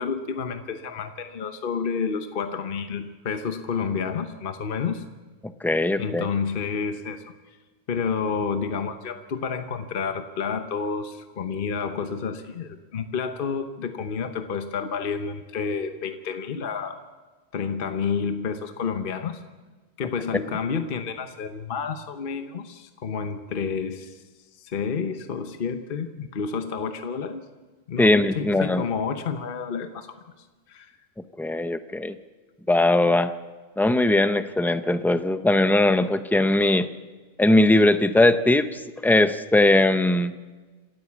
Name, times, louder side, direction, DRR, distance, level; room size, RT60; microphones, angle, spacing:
voice 1, 0.0-5.0 6.0-7.2 7.9-17.0 17.5-19.4 20.0-24.2 24.6-27.5 27.9-30.1 30.7-30.9, left 6 dB, 50° left, 7 dB, 1.1 m, -30 dB
voice 2, 5.6-6.3 28.0-28.8 31.4-32.1 32.7-33.3 33.8-36.9 37.4-40.3, left 2 dB, 5° left, 10 dB, 0.4 m, -20 dB
27.0 x 13.5 x 7.2 m, 1.3 s
omnidirectional pair, 1.2 m